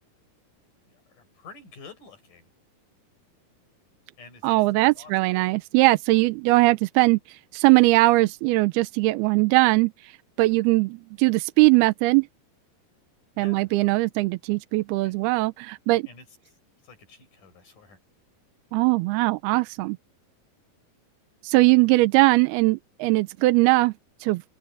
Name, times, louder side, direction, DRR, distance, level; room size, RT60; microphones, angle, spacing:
voice 1, 0.9-2.5 4.2-4.6 4.9-5.5 13.3-13.7 15.0-15.1 15.9-16.6 16.8-18.0, left 4 dB, 55° left, 8.2 m, -49 dB
voice 2, 4.4-12.3 13.4-16.0 18.7-20.0 21.4-23.9 24.2-24.4, right 22 dB, 85° right, 2.6 m, -20 dB
open air
omnidirectional pair, 4.4 m